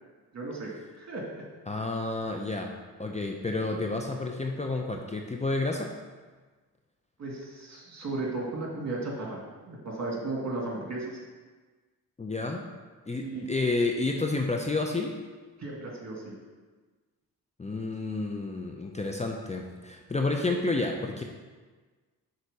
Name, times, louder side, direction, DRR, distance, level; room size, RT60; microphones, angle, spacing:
voice 1, 0.3-0.7 1.0-1.4 7.2-9.4 9.7-11.2 13.2-13.4 15.6-16.4, right 2 dB, 45° right, -2 dB, 2.2 m, -35 dB
voice 2, 1.7-2.7 3.0-5.9 12.2-12.7 13.1-15.2 17.6-21.2, left 3 dB, 20° left, 2 dB, 0.6 m, -30 dB
6.3 x 4.1 x 5.4 m, 1.4 s
cardioid pair, 60°, 37 cm